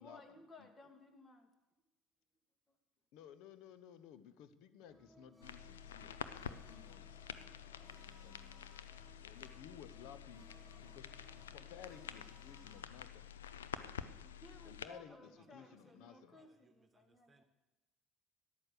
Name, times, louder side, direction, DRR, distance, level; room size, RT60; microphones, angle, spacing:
voice 1, 0.0-1.5 2.7-2.8 14.2-17.4, left 2 dB, 30° left, 5 dB, 2.4 m, -59 dB
voice 2, 3.1-6.2 6.4-7.3 7.6-8.4 9.2-13.3 14.6-16.4, left 9 dB, 70° left, 14 dB, 1.0 m, -57 dB
sound 1, 4.8-12.8, right 2 dB, 10° right, 0.9 m, -64 dB
sound 2, 5.4-14.9, left 9 dB, 90° left, 0.5 m, -49 dB
voice 3, 10.2-11.9 15.0-17.4, right 4 dB, 25° right, 5 dB, 1.5 m, -71 dB
13.0 x 10.5 x 6.8 m, 1.0 s
hypercardioid pair, 65°, 0 cm